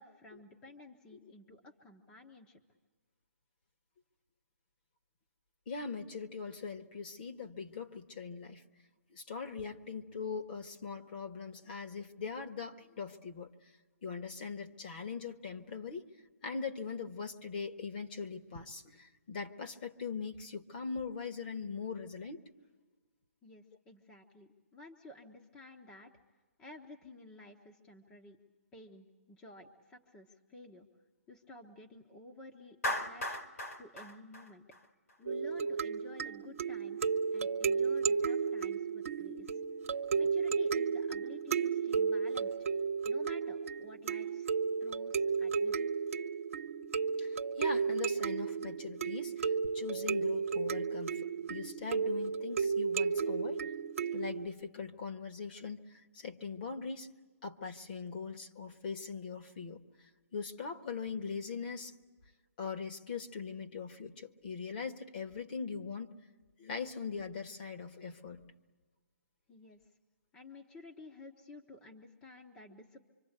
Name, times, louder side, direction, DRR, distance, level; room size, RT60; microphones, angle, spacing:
voice 1, 0.0-2.6 23.4-26.1 26.6-28.4 28.7-30.9 31.3-34.6 35.2-39.6 40.2-42.6 43.1-44.5 44.8-45.8 69.5-69.8 70.3-73.0, left 2 dB, 10° left, 1 dB, 1.1 m, -53 dB
voice 2, 5.7-8.6 9.1-13.5 14.0-16.1 16.4-22.5 47.2-53.6 54.1-57.1 57.4-59.8 60.3-61.9 62.6-66.1 66.6-68.4 69.8-69.9, left 5 dB, 35° left, 5 dB, 1.5 m, -41 dB
Clapping, 32.8-35.1, left 1 dB, 75° left, 4.0 m, -37 dB
sound 1, 35.3-54.5, right 5 dB, 60° right, 1.1 m, -33 dB
25.5 x 24.5 x 8.1 m, 1.4 s
hypercardioid pair, 165°, 8 cm